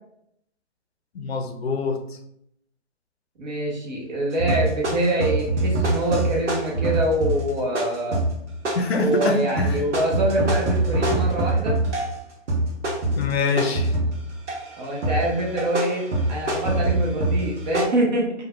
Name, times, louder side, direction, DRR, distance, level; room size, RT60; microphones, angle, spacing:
voice 1, 1.1-2.0 8.8-9.8 13.1-13.9, left 4 dB, 60° left, 6 dB, 0.5 m, -24 dB
voice 2, 3.4-8.2 8.9-11.8 14.8-18.3, right 1 dB, 40° right, -2 dB, 0.7 m, -25 dB
sound 1, 4.4-12.2 12.5-14.7 15.0-17.8, right 2 dB, 75° right, 0.8 m, -24 dB
3.2 x 2.3 x 2.3 m, 0.74 s
figure-of-eight pair, 145°, 35 cm